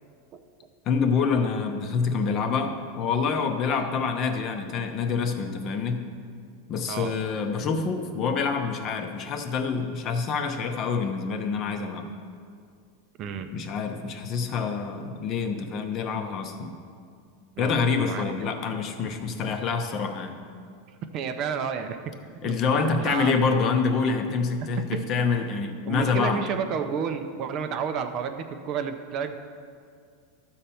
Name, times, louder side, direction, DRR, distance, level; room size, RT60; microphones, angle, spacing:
voice 1, 0.9-6.1 6.7-12.1 13.5-16.8 17.6-20.4 22.4-26.5, left 5 dB, 30° left, 6 dB, 0.7 m, -26 dB
voice 2, 13.2-13.5 17.6-18.3 21.1-22.1 22.4-23.4 24.6-25.1 25.9-29.4, right 7 dB, 35° right, 7 dB, 0.5 m, -31 dB
12.0 x 4.4 x 6.9 m, 2.2 s
supercardioid pair, 165°, 0 cm